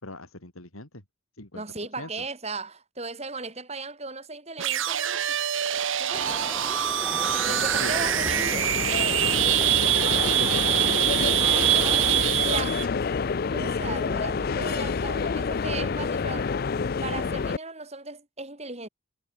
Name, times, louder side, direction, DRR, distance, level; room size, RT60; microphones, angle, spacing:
voice 1, 0.0-1.0 1.3-1.6 2.0-2.3 7.4-7.9 9.8-11.5 14.6-15.0 15.8-15.9, left 2 dB, 85° left, 4.6 m, -39 dB
voice 2, 1.5-5.4 6.0-6.4 7.3-8.7 12.4-12.8 13.5-16.5 17.0-18.9, right 3 dB, 30° right, 5.8 m, -36 dB
sound 1, 4.6-12.9, right 13 dB, 65° right, 0.9 m, -24 dB
sound 2, 6.1-12.2, right 1 dB, 10° right, 1.2 m, -36 dB
sound 3, 6.7-17.6, left 5 dB, 45° left, 0.4 m, -28 dB
head